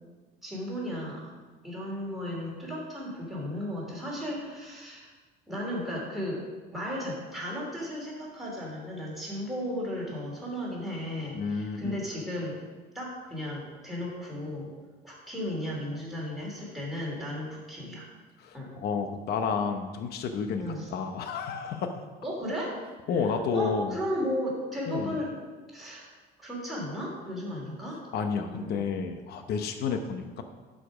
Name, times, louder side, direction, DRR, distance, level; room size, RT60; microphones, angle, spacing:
voice 1, 0.4-1.2 1.6-5.1 5.5-6.4 6.7-12.6 12.9-14.7 15.0-18.1 18.5-18.7 20.6-20.9 22.2-22.8 23.5-25.3 25.7-26.1 26.4-28.0 28.5-28.8, equal, ahead, -5 dB, 2.8 m, -35 dB
voice 2, 11.3-11.9 18.4-22.0 23.1-24.0 24.9-25.2 28.1-30.4, left 5 dB, 55° left, 7 dB, 0.8 m, -31 dB
11.0 x 5.2 x 5.0 m, 1.3 s
cardioid pair, 145°, 19 cm